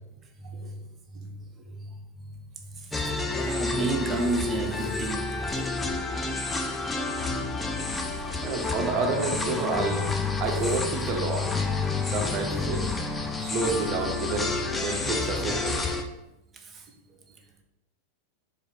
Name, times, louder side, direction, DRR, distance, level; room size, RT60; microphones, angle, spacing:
voice 1, 0.4-0.8 1.1-1.4 1.8-1.9 2.2-2.3 2.7-3.0 3.3-5.5 16.5-16.9, right 3 dB, 20° right, 0.9 m, -32 dB
sound 1, 2.9-16.0, left 3 dB, 10° left, 0.6 m, -29 dB
voice 2, 8.4-10.1 10.4-11.6 12.0-12.9 13.4-15.8, right 3 dB, 35° right, 1.3 m, -29 dB
4.9 x 4.1 x 5.6 m
figure-of-eight pair, 90°, 0 cm